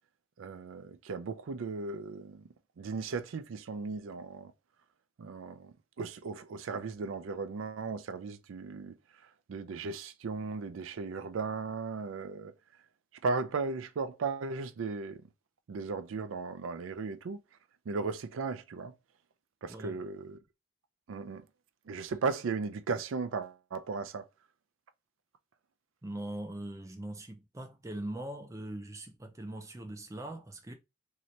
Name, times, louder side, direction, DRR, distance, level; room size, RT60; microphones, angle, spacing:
voice 1, 0.4-2.4 2.8-4.5 5.2-8.9 9.5-12.5 13.2-15.2 15.7-17.4 17.9-18.9 19.6-20.4 21.1-21.4 21.9-24.2, right 4 dB, 85° right, 0.4 m, -36 dB
voice 2, 19.6-20.0 26.0-30.7, right 1 dB, 15° right, 0.3 m, -41 dB
3.1 x 2.8 x 2.6 m
head